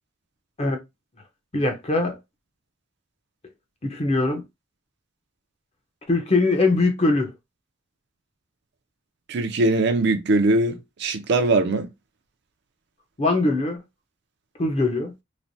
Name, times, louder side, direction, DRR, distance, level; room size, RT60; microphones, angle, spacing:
voice 1, 1.5-2.2 3.8-4.4 6.1-7.3 13.2-13.8 14.6-15.1, left 2 dB, 30° left, 0.7 m, -21 dB
voice 2, 9.3-11.9, right 2 dB, 60° right, 0.4 m, -21 dB
3.1 x 2.1 x 2.6 m
head